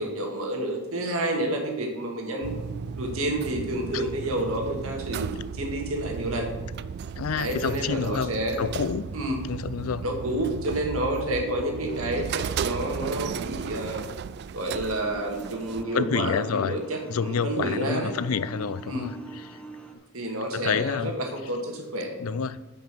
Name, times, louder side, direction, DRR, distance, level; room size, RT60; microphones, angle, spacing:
voice 1, 0.0-2.6 3.0-6.5 7.3-8.7 9.1-9.4 10.0-14.1 14.5-18.1 18.9-19.1 20.1-22.1, right 1 dB, 75° right, 2 dB, 2.0 m, -29 dB
sound 1, 2.4-15.8, right 6 dB, 50° right, 0.3 m, -35 dB
voice 2, 7.2-8.3 8.6-9.1 9.5-10.0 15.9-16.8 17.1-19.6 20.5-21.1 22.2-22.6, left 6 dB, 85° left, 16 dB, 0.4 m, -28 dB
sound 2, 14.8-19.9, right 4 dB, 5° left, 0.9 m, -43 dB
8.9 x 5.5 x 6.1 m, 1.1 s
head